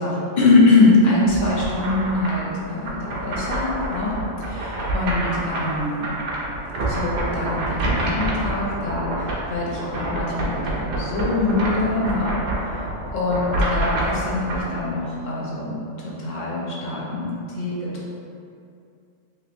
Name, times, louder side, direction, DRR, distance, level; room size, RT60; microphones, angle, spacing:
voice 1, 0.0-6.3 6.9-18.1, left 2 dB, 55° left, -5 dB, 0.5 m, -23 dB
sound 1, 1.2-14.6, right 1 dB, 65° right, 0.5 m, -27 dB
3.1 x 3.0 x 2.5 m, 2.5 s
omnidirectional pair, 1.4 m